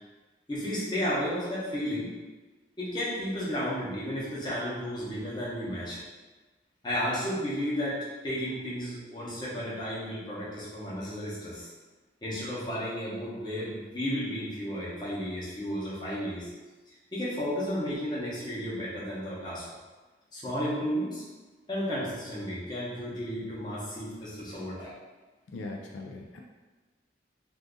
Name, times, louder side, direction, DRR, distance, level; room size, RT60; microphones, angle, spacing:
voice 1, 0.5-2.1 2.8-6.0 6.8-11.7 12.2-16.5 17.1-19.6 20.3-21.2 21.7-24.9, equal, 25° left, -8 dB, 0.8 m, -33 dB
voice 2, 25.5-26.4, left 2 dB, 80° left, 1 dB, 0.3 m, -40 dB
2.5 x 2.5 x 3.6 m, 1.2 s
head